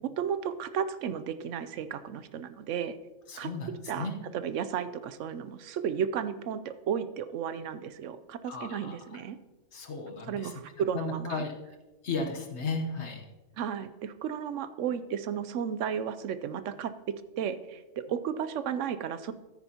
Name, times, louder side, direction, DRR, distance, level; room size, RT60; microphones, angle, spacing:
voice 1, 0.0-3.0 3.4-3.5 3.9-9.4 10.3-11.4 13.6-16.9 17.4-19.3, right 8 dB, 75° right, 12 dB, 0.9 m, -33 dB
voice 2, 3.3-3.7 4.0-4.2 8.5-9.0 9.7-10.5 10.9-11.5 12.0-13.2, left 3 dB, 60° left, 3 dB, 1.3 m, -34 dB
13.0 x 9.8 x 2.8 m, 1.1 s
omnidirectional pair, 1.3 m